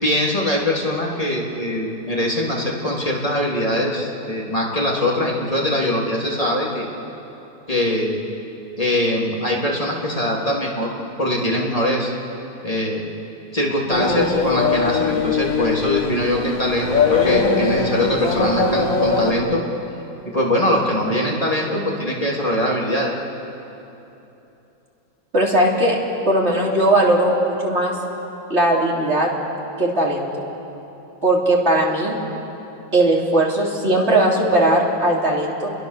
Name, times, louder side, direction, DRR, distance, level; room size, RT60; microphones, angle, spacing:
voice 1, 0.0-6.8 7.7-8.2 8.8-10.9 11.2-12.1 12.6-13.0 13.5-19.6 20.2-23.1, left 1 dB, 15° left, -3 dB, 3.3 m, -22 dB
sound 1, 13.9-19.3, left 4 dB, 45° left, 2.1 m, -21 dB
voice 2, 25.3-26.0 26.3-28.0 28.5-29.3 29.8-30.3 31.2-32.2 32.9-35.7, right 1 dB, 30° right, -2 dB, 3.4 m, -18 dB
29.5 x 23.0 x 6.9 m, 3.0 s
omnidirectional pair, 2.2 m